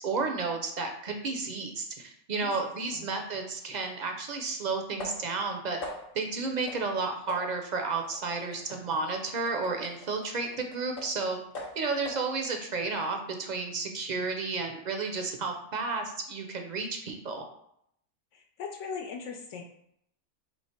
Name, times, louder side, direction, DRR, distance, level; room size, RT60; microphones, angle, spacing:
voice 1, 0.0-5.8 6.1-11.4 11.8-17.4, right 4 dB, 55° right, 3 dB, 0.5 m, -32 dB
sound 1, 3.8-3.9 5.0-5.4 5.8-6.3 6.7-6.9 7.3-11.2 11.5-12.3, left 2 dB, 55° left, 1.0 m, -44 dB
voice 2, 18.3-19.6, left 5 dB, 80° left, 1 dB, 0.9 m, -39 dB
3.1 x 3.1 x 4.3 m, 0.72 s
omnidirectional pair, 1.3 m